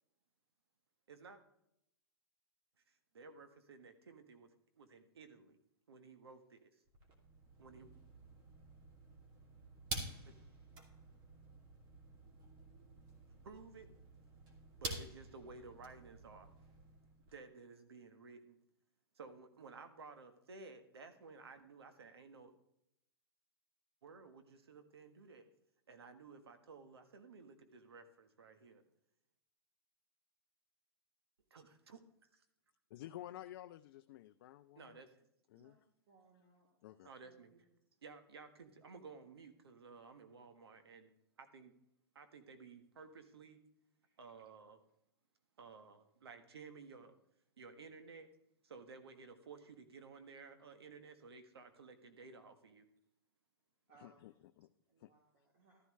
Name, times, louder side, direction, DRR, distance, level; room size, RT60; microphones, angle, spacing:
voice 1, 1.1-1.4 2.9-5.6 5.9-6.8 7.6-7.9 10.2-10.3 13.4-13.9 14.8-16.5 17.3-18.6 19.1-22.5 24.0-25.5 25.9-28.8 31.5-32.0 32.3-32.4 34.7-35.2 37.0-37.5 38.0-41.1 41.4-41.7 42.1-43.6 44.2-44.8 45.6-47.2 47.6-48.3 48.6-52.9, right 4 dB, 85° right, 8 dB, 1.4 m, -55 dB
sound 1, 6.9-17.4, right 2 dB, 35° right, 2.6 m, -50 dB
voice 2, 32.9-35.0 35.5-35.8 36.8-37.1 54.0-54.7 55.0-55.1, left 13 dB, 55° left, 9 dB, 0.5 m, -52 dB
voice 3, 36.1-37.6 44.0-44.2 53.9-54.2 54.9-55.8, right 4 dB, 50° right, -3 dB, 3.2 m, -68 dB
13.0 x 11.0 x 3.2 m, 0.79 s
hypercardioid pair, 125°, 13 cm